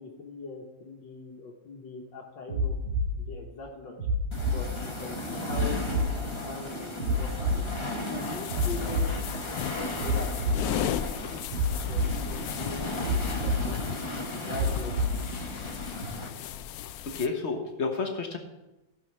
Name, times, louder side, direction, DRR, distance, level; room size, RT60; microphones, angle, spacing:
voice 1, 0.0-2.8 3.2-4.0 4.4-7.7 8.1-9.2 9.9-10.5 10.9-11.0 11.3-11.4 11.7-14.0 14.3-15.1, left 3 dB, 70° left, 0 dB, 1.8 m, -41 dB
sound 1, 2.5-3.1 4.0-4.6 5.5-6.1 7.0-7.6 8.5-9.1 10.0-10.6 11.5-12.1 13.0-13.6 14.5-15.1 16.0-16.1, right 1 dB, 70° right, 3.1 m, -27 dB
sound 2, 4.3-16.3, left 1 dB, 20° left, 1.1 m, -36 dB
sound 3, 8.2-17.3, left 11 dB, 90° left, 0.8 m, -37 dB
voice 2, 17.1-18.4, left 4 dB, 40° left, 5 dB, 1.2 m, -30 dB
14.5 x 5.6 x 6.0 m, 1.0 s
omnidirectional pair, 2.1 m